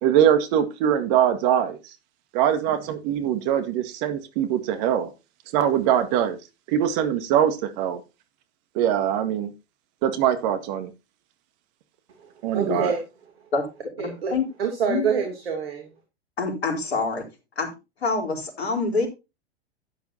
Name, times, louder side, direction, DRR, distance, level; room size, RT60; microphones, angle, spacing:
voice 1, 0.0-1.8 2.3-5.1 5.5-6.4 6.7-8.0 8.8-9.5 10.0-10.9 12.4-12.9, right 10 dB, 45° right, 1.8 m, -22 dB
voice 2, 12.2-13.0 14.0-15.9, right 6 dB, 65° right, 2.8 m, -27 dB
voice 3, 14.0-14.4 14.9-15.1 16.4-17.2 17.6-17.7 18.0-19.1, left 4 dB, 70° left, 4.1 m, -26 dB
12.0 x 10.0 x 2.8 m
figure-of-eight pair, 100°, 32 cm